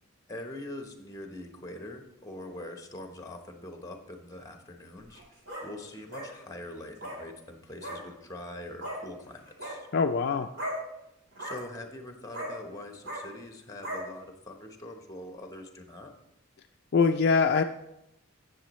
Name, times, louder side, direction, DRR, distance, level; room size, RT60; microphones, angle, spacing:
voice 1, 0.3-5.2 5.6-9.9 11.4-16.1, left 1 dB, 15° left, 5 dB, 1.0 m, -43 dB
sound 1, 5.0-5.6 6.1-6.3 6.9-7.2 7.8-8.0 8.8-9.0 9.5-9.7 10.5-10.8 11.3-11.6 12.3-12.5 13.0-13.2 13.8-14.0, equal, 60° right, 3.6 m, -36 dB
voice 2, 9.9-10.5 16.9-17.6, left 5 dB, 50° left, 6 dB, 0.4 m, -23 dB
14.5 x 6.9 x 3.1 m, 0.85 s
head